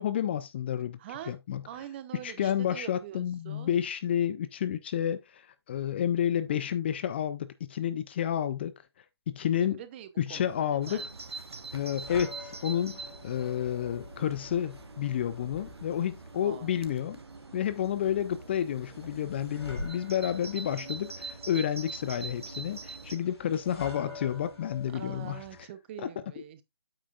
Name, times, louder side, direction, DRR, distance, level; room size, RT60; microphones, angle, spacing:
voice 1, 0.0-1.0 1.3-1.6 2.2-8.7 9.3-9.8 10.2-11.0 11.7-17.2 17.5-25.4, left 10 dB, 25° left, 0.4 m, -30 dB
voice 2, 1.0-1.4 1.7-3.7 9.6-11.1 16.4-16.8 23.7-24.5 24.9-26.6, right 11 dB, 25° right, 0.7 m, -45 dB
sound 1, 10.4-25.6, left 2 dB, 75° left, 5.1 m, -48 dB
Bird vocalization bird call bird song, 10.8-23.2, right 4 dB, 75° right, 1.3 m, -44 dB
8.8 x 7.4 x 2.4 m
figure-of-eight pair, 145°, 14 cm